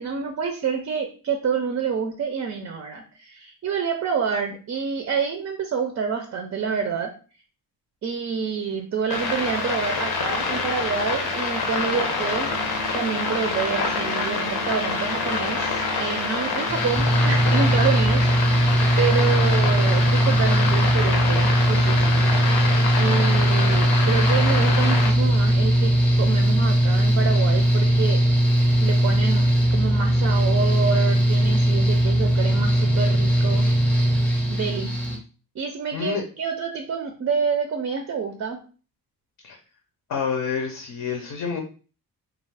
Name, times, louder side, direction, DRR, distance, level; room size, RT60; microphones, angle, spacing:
voice 1, 0.0-7.1 8.0-12.5 12.9-18.7 19.0-22.3 23.0-25.9 26.2-28.2 28.8-33.7 34.5-34.9 35.6-38.6, right 6 dB, 40° right, 4 dB, 0.4 m, -28 dB
sound 1, 9.1-25.1, left 4 dB, 85° left, 0.8 m, -26 dB
sound 2, 12.5-24.4, right 4 dB, 90° right, 0.5 m, -40 dB
Mechanical fan, 16.7-35.2, right 1 dB, 5° left, 0.6 m, -19 dB
voice 2, 35.9-36.2 39.4-39.6 40.1-41.6, left 6 dB, 55° left, 2 dB, 0.6 m, -28 dB
2.4 x 2.4 x 3.3 m, 0.37 s
cardioid pair, 120°, 38 cm